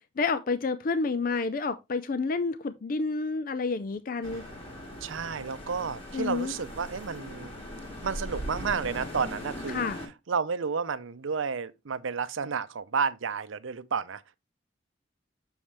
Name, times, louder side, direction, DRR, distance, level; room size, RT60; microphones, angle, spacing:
voice 1, 0.2-4.4 6.1-6.5 9.7-10.0, left 4 dB, 45° left, 0.4 m, -29 dB
sound 1, 4.2-10.1, equal, 30° left, 2.2 m, -40 dB
voice 2, 5.0-7.5 8.0-9.9 10.3-14.4, right 5 dB, 85° right, 0.6 m, -31 dB
7.2 x 6.2 x 3.3 m
head